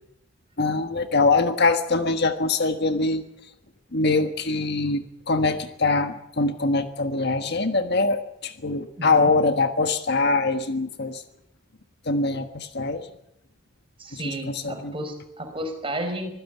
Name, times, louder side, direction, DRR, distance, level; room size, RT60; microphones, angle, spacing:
voice 1, 0.6-3.2 3.9-11.2 12.0-13.1 14.1-14.9, left 3 dB, 50° left, 7 dB, 1.5 m, -23 dB
voice 2, 9.0-9.3 14.0-16.3, right 1 dB, 25° right, 6 dB, 5.0 m, -32 dB
25.0 x 15.5 x 9.3 m, 0.80 s
head